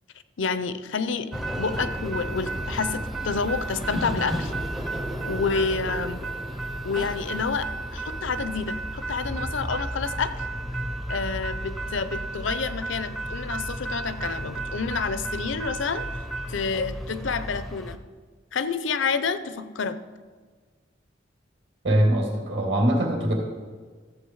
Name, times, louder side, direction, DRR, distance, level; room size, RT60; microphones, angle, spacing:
voice 1, 0.4-1.3 1.6-4.5 5.3-6.2 6.8-10.3 11.1-16.1 16.5-18.0 18.5-20.0, left 5 dB, 70° left, 13 dB, 0.6 m, -29 dB
sound 1, 1.3-18.0, right 1 dB, ahead, 0.5 m, -32 dB
voice 2, 21.8-23.3, right 1 dB, 65° right, 0 dB, 2.6 m, -22 dB
13.5 x 7.6 x 4.8 m, 1.5 s
head